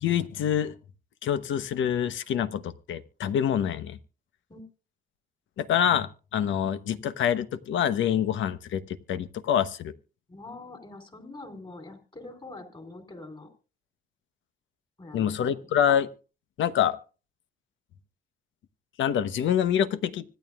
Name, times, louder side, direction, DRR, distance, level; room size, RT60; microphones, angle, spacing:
voice 1, 0.0-0.7 1.2-4.0 5.6-10.0 15.1-16.1 16.6-17.0 19.0-20.2, left 9 dB, 75° left, 13 dB, 1.0 m, -26 dB
voice 2, 10.3-13.5 15.0-15.7, left 2 dB, 25° left, 7 dB, 3.7 m, -44 dB
25.0 x 9.3 x 2.4 m, 0.34 s
cardioid pair, 90°, 20 cm